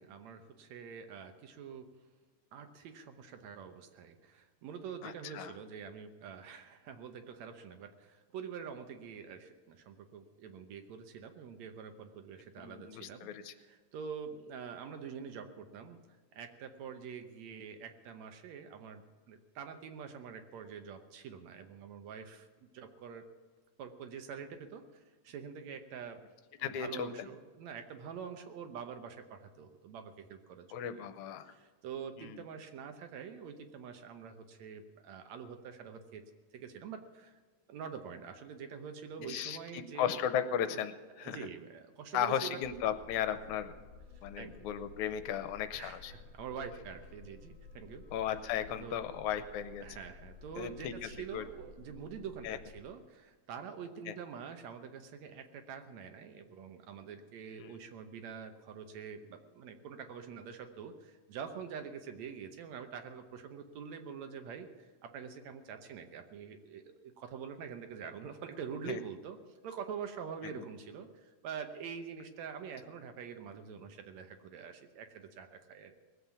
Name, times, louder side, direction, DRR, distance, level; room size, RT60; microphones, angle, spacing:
voice 1, 0.0-1.9 2.5-13.3 13.6-16.0 16.3-23.2 23.8-26.2 26.6-31.1 31.5-36.2 36.5-37.4 37.7-40.2 41.2-42.6 44.4-44.7 45.7-48.0 48.7-49.0 49.8-69.4 69.6-76.0, right 7 dB, 70° right, 7 dB, 2.1 m, -46 dB
voice 2, 5.0-5.5 12.6-13.5 26.6-27.3 30.7-31.5 32.2-32.4 39.2-41.5 42.1-43.7 44.2-46.1 48.1-49.9 50.6-51.4 52.4-52.6 54.1-54.2 57.5-57.7 68.9-69.0, left 9 dB, 80° left, 11 dB, 2.1 m, -36 dB
sound 1, 42.6-52.8, left 3 dB, 40° left, 2.6 m, -54 dB
19.5 x 8.1 x 7.1 m, 1.4 s
omnidirectional pair, 3.5 m